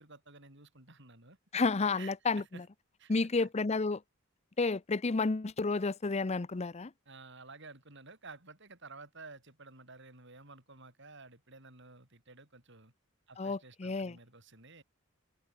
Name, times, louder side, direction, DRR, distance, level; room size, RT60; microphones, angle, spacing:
voice 1, 0.0-1.4 2.0-2.6 3.0-3.1 3.4-3.5 7.1-12.9 13.3-14.8, right 3 dB, 60° right, 7.6 m, -53 dB
voice 2, 1.5-2.6 3.1-4.0 4.6-6.9 13.4-14.2, left 3 dB, 30° left, 0.6 m, -31 dB
open air
head